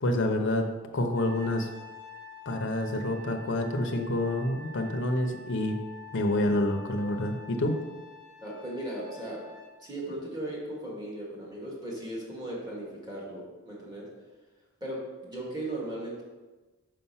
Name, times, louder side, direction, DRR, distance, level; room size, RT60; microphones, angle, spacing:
voice 1, 0.0-0.7 0.9-1.7 2.5-5.8 6.1-7.7, left 1 dB, 55° left, 4 dB, 0.7 m, -28 dB
Trumpet, 1.1-9.7, left 3 dB, 50° right, 2.1 m, -47 dB
voice 2, 8.4-9.4 9.8-14.1 14.8-16.2, right 1 dB, 20° right, -4 dB, 1.9 m, -37 dB
5.5 x 5.1 x 5.6 m, 1.2 s
head